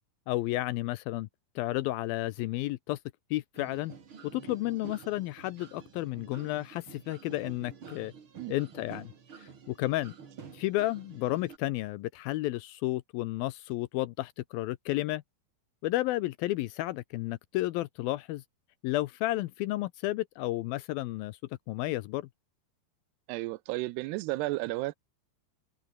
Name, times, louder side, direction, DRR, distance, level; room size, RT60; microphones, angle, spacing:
voice 1, 0.3-1.3 1.6-3.0 3.3-3.9 4.2-8.1 8.5-9.1 9.4-10.1 10.5-15.2 15.8-18.4 18.8-21.4 21.7-22.3, left 17 dB, 80° left, 2.3 m, -32 dB
sound 1, 3.5-11.6, right 6 dB, 35° right, 2.6 m, -49 dB
voice 2, 23.3-25.0, right 20 dB, 90° right, 2.7 m, -33 dB
omnidirectional pair, 4.7 m